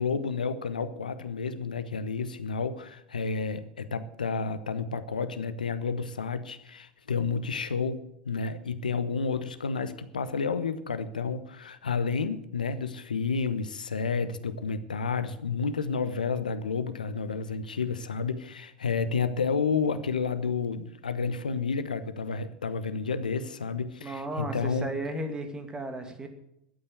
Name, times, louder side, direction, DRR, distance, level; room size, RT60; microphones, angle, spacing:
voice 1, 0.0-24.9, left 5 dB, 80° left, 12 dB, 1.0 m, -30 dB
voice 2, 24.0-26.3, right 1 dB, 15° right, 6 dB, 2.4 m, -34 dB
13.0 x 8.8 x 7.8 m, 0.78 s
figure-of-eight pair, 80°, 4 cm